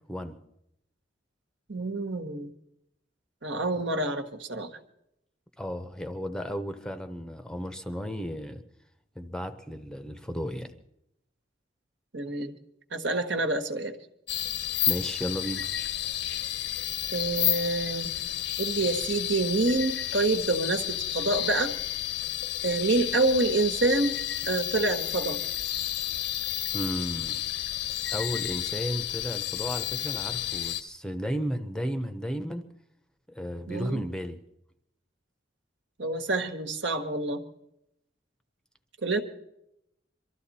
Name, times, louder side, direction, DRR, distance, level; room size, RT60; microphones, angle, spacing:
voice 1, 1.7-2.5 3.4-4.7 12.1-12.5 12.9-14.0 17.1-18.1 18.6-21.7 22.6-25.4 33.7-34.0 36.0-37.4 39.0-39.2, right 2 dB, 65° right, 7 dB, 1.5 m, -27 dB
voice 2, 5.6-8.6 9.2-10.7 14.9-15.7 26.7-27.4 28.1-32.6 33.3-34.4, equal, 5° left, 8 dB, 0.8 m, -34 dB
sound 1, 14.3-30.8, left 12 dB, 60° left, 0.9 m, -31 dB
23.5 x 13.5 x 4.2 m, 0.80 s
head